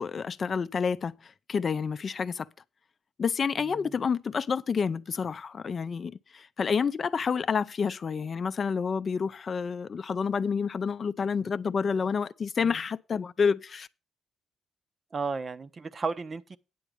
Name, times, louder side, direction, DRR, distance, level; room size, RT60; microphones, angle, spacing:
voice 1, 0.0-2.5 3.2-13.9, left 6 dB, 45° left, 0.5 m, -29 dB
voice 2, 15.1-16.6, right 4 dB, 35° right, 0.7 m, -33 dB
9.4 x 6.9 x 5.0 m
cardioid pair, 90°, 0 cm